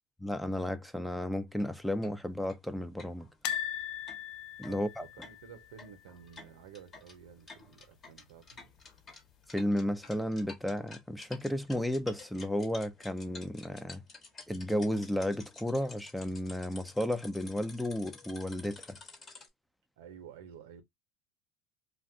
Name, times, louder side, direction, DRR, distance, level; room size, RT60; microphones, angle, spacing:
voice 1, 0.2-3.3 4.6-5.0 9.5-14.0 14.5-19.0, left 1 dB, ahead, 0.4 m, -33 dB
sound 1, 1.5-1.7 2.0-2.1 2.5-2.6 3.0-19.5, left 3 dB, 30° left, 1.1 m, -52 dB
sound 2, 3.4-6.5 6.8-7.0 7.2-7.3 8.6-9.1 9.6-9.7, left 10 dB, 65° left, 0.3 m, -39 dB
voice 2, 4.7-8.7 20.0-20.8, right 8 dB, 85° right, 0.7 m, -52 dB
2.4 x 2.3 x 3.5 m
supercardioid pair, 95°, 0 cm